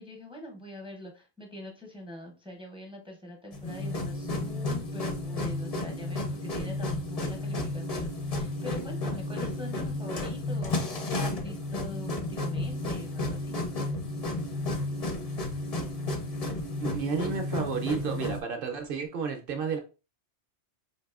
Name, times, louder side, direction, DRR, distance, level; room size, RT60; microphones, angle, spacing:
voice 1, 0.0-10.9 11.1-13.5, left 1 dB, 5° right, 0.4 m, -44 dB
sound 1, 3.5-18.4, left 2 dB, 45° left, 0.5 m, -32 dB
voice 2, 16.8-19.8, right 5 dB, 60° right, 0.7 m, -31 dB
4.6 x 2.6 x 2.4 m
omnidirectional pair, 1.2 m